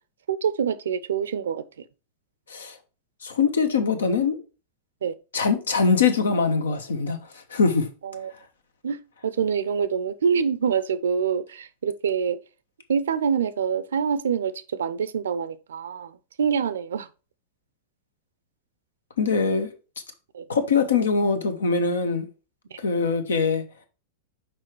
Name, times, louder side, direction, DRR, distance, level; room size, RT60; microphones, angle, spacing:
voice 1, 0.3-1.6 5.0-5.1 8.0-8.3 8.8-12.4 12.9-17.1 20.3-20.4 22.7-22.8, right 7 dB, 65° right, 0.6 m, -26 dB
voice 2, 3.2-4.4 5.3-7.9 19.2-19.7 20.5-22.3 22.8-23.6, left 5 dB, 70° left, 1.1 m, -22 dB
6.1 x 4.6 x 4.6 m
figure-of-eight pair, 95°, 0 cm